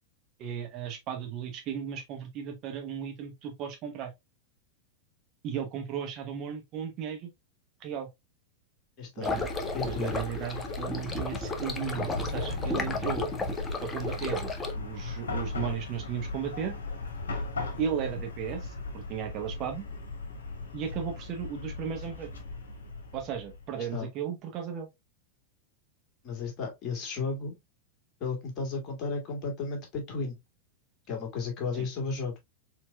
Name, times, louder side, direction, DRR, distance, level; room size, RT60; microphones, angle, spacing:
voice 1, 0.4-4.1 5.4-7.3 7.8-8.1 9.2-9.5 9.8-13.3 13.8-16.8 17.8-19.9 20.7-22.3 23.1-24.9 31.7-31.9, right 8 dB, 35° right, 0.9 m, -35 dB
voice 2, 9.0-9.3 9.7-10.2 23.8-24.1 26.2-27.5 28.2-30.4 31.1-32.4, left 4 dB, 35° left, 1.9 m, -34 dB
sound 1, 9.2-14.7, left 3 dB, 15° left, 0.7 m, -34 dB
Chatter / Car passing by / Traffic noise roadway noise, 9.4-23.7, left 3 dB, 65° left, 1.3 m, -37 dB
4.4 x 3.9 x 2.3 m
figure-of-eight pair, 90°, 0 cm